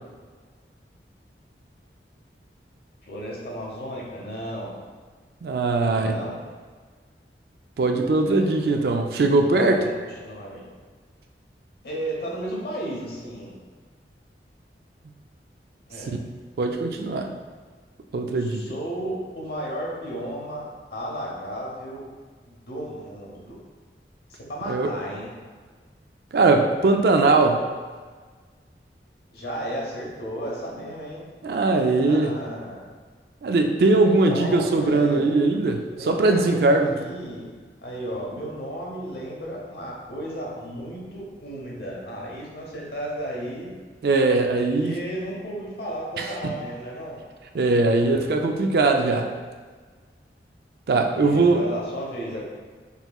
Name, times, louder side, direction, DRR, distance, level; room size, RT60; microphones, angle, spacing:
voice 1, 3.0-4.7 5.8-6.4 8.2-9.0 9.5-9.9 10.2-10.6 11.8-13.5 15.9-16.1 18.3-22.1 22.5-23.6 24.3-25.3 29.3-31.3 32.0-32.9 33.9-35.4 36.0-37.5 37.8-43.7 44.5-47.2 47.7-48.3 51.1-52.4, equal, 65° left, -3 dB, 0.9 m, -34 dB
voice 2, 5.4-6.2 7.8-9.8 16.1-16.2 16.6-17.3 18.1-18.6 24.7-24.9 26.3-27.6 31.4-32.3 33.4-36.9 44.0-44.9 47.5-49.3 50.9-51.6, right 3 dB, 60° right, 4 dB, 0.3 m, -20 dB
5.4 x 3.0 x 2.3 m, 1.5 s
head